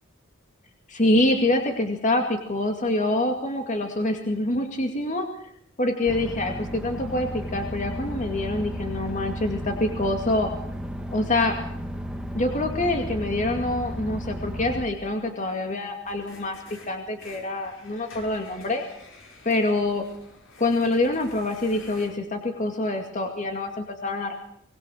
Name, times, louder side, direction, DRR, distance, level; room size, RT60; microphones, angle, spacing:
voice 1, 0.9-5.3 5.8-10.5 11.1-11.6 12.3-18.8 19.4-20.0 20.6-24.3, left 2 dB, 40° left, 4 dB, 2.3 m, -25 dB
sound 1, 6.1-14.8, equal, 5° right, 1.9 m, -33 dB
sound 2, 16.0-22.1, left 2 dB, 70° left, 5.6 m, -49 dB
24.0 x 21.0 x 6.5 m, 0.71 s
head